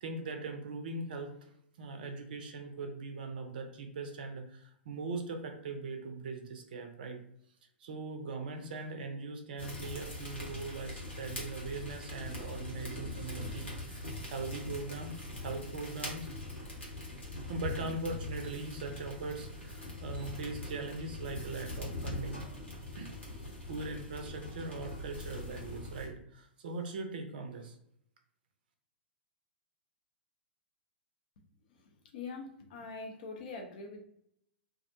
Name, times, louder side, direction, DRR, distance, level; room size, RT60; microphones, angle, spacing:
voice 1, 0.0-1.5 1.8-7.2 7.8-15.1 15.4-16.3 17.5-22.4 22.9-23.1 23.7-27.8, right 3 dB, 50° right, 5 dB, 0.5 m, -40 dB
sound 1, 9.6-26.1, left 2 dB, 75° left, 1.1 m, -42 dB
voice 2, 31.7-34.0, left 4 dB, 50° left, 2 dB, 0.5 m, -44 dB
2.3 x 2.0 x 2.7 m, 0.70 s
figure-of-eight pair, 105°, 6 cm